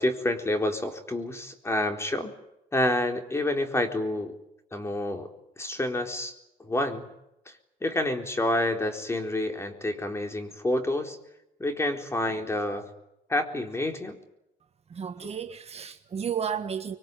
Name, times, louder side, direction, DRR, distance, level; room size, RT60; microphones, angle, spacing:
voice 1, 0.0-2.3 2.7-4.4 4.7-6.3 6.6-7.1 7.5-7.6 7.8-11.2 11.6-12.9 13.3-14.2, left 1 dB, 15° left, 4.1 m, -28 dB
voice 2, 14.9-17.0, right 7 dB, 40° right, 1.6 m, -32 dB
25.5 x 23.5 x 9.4 m
cardioid pair, 110°, 17 cm